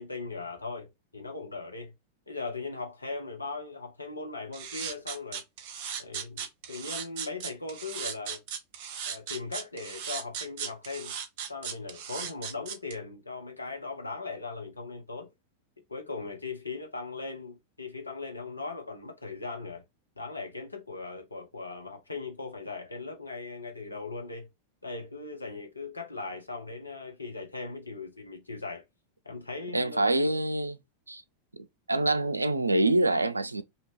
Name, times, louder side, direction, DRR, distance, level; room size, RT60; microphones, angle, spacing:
voice 1, 0.0-1.9 2.3-5.4 6.0-8.4 9.0-11.1 11.5-15.3 15.9-19.8 20.2-24.5 24.8-28.8 29.2-30.2, left 3 dB, 80° left, 0.9 m, -39 dB
sound 1, 4.5-12.9, right 7 dB, 45° right, 0.8 m, -37 dB
voice 2, 29.7-30.8 31.1-31.2 31.6-33.6, right 2 dB, 80° right, 0.3 m, -26 dB
2.9 x 2.8 x 3.1 m
figure-of-eight pair, 90°, 0 cm